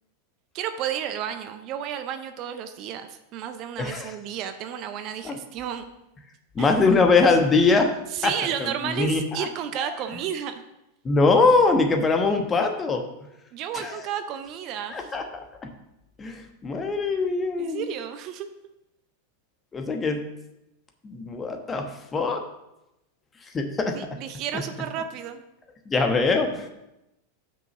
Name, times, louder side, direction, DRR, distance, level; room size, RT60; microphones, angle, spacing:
voice 1, 0.5-5.8 6.6-6.7 8.1-10.6 13.5-15.1 17.6-18.5 23.9-25.4, right 9 dB, 40° right, 9 dB, 0.6 m, -32 dB
voice 2, 3.8-4.1 5.2-5.4 6.5-7.9 8.2-8.3 8.6-9.5 11.0-13.0 13.7-14.0 14.9-15.7 16.2-17.8 19.7-20.2 21.0-21.8 22.1-22.4 23.5-24.0 25.9-26.7, left 3 dB, 20° left, 4 dB, 1.1 m, -22 dB
6.2 x 5.3 x 6.7 m, 0.90 s
figure-of-eight pair, 90°, 0 cm